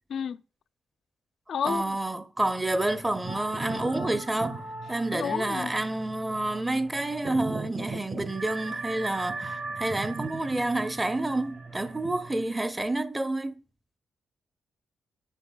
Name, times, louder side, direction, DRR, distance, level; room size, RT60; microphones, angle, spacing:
voice 1, 0.1-0.4 1.5-1.8 5.1-5.7, left 7 dB, 65° left, 0.3 m, -30 dB
voice 2, 1.6-13.6, right 2 dB, 15° right, 0.5 m, -29 dB
sound 1, 2.4-12.4, right 3 dB, 55° right, 1.4 m, -40 dB
sound 2, 3.2-7.2 7.5-7.6 8.2-12.9, right 2 dB, 75° right, 3.8 m, -41 dB
8.2 x 5.9 x 2.2 m
cardioid pair, 75°, 0 cm